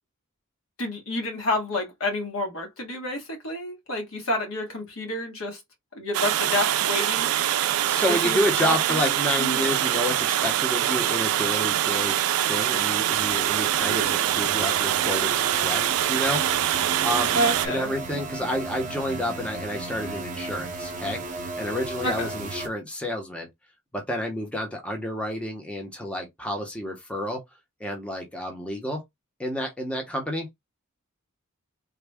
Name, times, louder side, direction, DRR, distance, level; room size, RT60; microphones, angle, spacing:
voice 1, 0.8-5.6 5.9-7.3 8.2-9.1 9.4-9.7 17.3-17.9 22.0-22.3, left 1 dB, 70° left, 1.4 m, -29 dB
Water, 6.1-17.7, right 12 dB, 85° right, 0.3 m, -24 dB
voice 2, 7.8-12.2 12.4-17.4 17.7-23.5 23.9-27.4 27.8-29.0 29.4-30.5, equal, 5° left, 0.7 m, -30 dB
sound 1, 13.2-22.7, right 2 dB, 35° right, 0.7 m, -35 dB
3.5 x 2.1 x 3.4 m
head